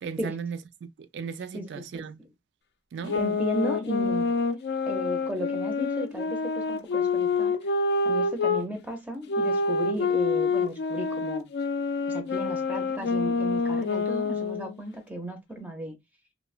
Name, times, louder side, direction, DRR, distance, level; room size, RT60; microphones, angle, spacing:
voice 1, 0.0-2.2 2.9-3.2, right 6 dB, 75° right, 0.3 m, -36 dB
voice 2, 1.5-2.0 3.0-4.3 4.9-7.7 8.0-11.5 12.1-16.0, right 1 dB, 10° right, 0.5 m, -35 dB
sound 1, 3.1-8.6 9.3-14.8, left 4 dB, 65° left, 0.4 m, -27 dB
2.9 x 2.0 x 2.3 m
head